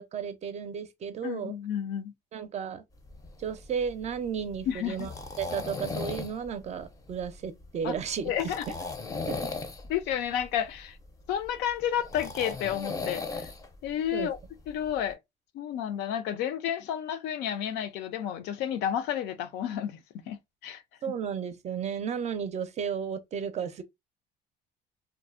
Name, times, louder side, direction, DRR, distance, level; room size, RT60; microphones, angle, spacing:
voice 1, 0.0-1.6 2.3-2.8 3.4-5.1 5.4-8.3 8.7-8.8 9.3-9.4 14.1-14.3 21.0-23.8, right 7 dB, 40° right, 0.4 m, -33 dB
voice 2, 1.2-2.1 4.7-5.0 7.8-7.9 8.2-8.6 9.9-11.0 11.3-13.5 13.8-14.4 14.7-15.2 15.5-20.0 20.3-20.4 20.6-20.8 21.1-21.2, left 10 dB, 85° left, 0.4 m, -31 dB
sound 1, 3.0-15.1, left 4 dB, 20° left, 0.5 m, -38 dB
2.6 x 2.0 x 2.4 m
cardioid pair, 110°, 17 cm